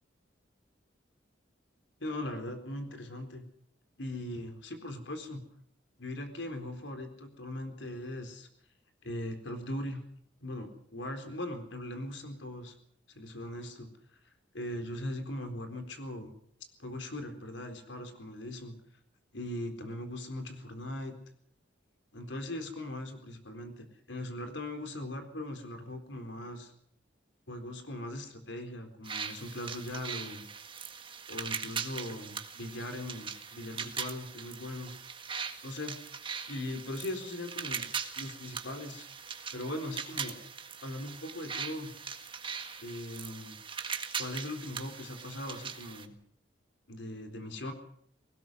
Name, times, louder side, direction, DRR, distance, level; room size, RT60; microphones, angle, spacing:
voice 1, 2.0-3.4 4.0-5.4 6.0-8.5 9.0-10.0 10.4-12.7 13.1-13.9 14.5-16.3 16.8-18.8 19.3-21.1 22.1-26.7 27.5-30.4 31.3-34.9 35.6-36.0 36.5-37.9 38.2-39.0 39.5-40.3 40.8-41.9 42.8-43.6 44.2-46.1 46.9-47.7, left 1 dB, 80° left, 7 dB, 4.0 m, -39 dB
sound 1, 29.0-46.0, right 6 dB, 25° right, 1.7 m, -40 dB
20.0 x 18.0 x 7.9 m, 0.65 s
head